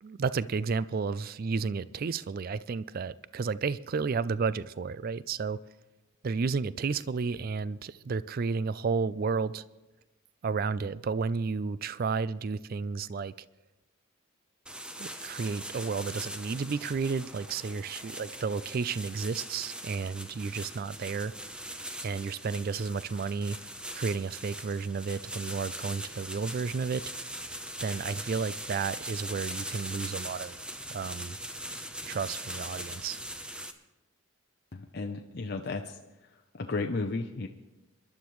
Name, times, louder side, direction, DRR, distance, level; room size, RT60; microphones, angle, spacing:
voice 1, 0.0-5.6 6.2-9.6 10.4-13.3 15.0-21.3 22.0-23.6 23.9-27.0 27.8-30.6 30.9-31.4 32.1-33.2, right 5 dB, 45° right, 17 dB, 0.4 m, -32 dB
sound 1, 14.7-33.7, right 1 dB, 5° right, 0.7 m, -41 dB
voice 2, 34.7-36.0 36.5-37.5, left 3 dB, 50° left, 3 dB, 0.7 m, -33 dB
26.5 x 11.5 x 3.1 m, 1.0 s
head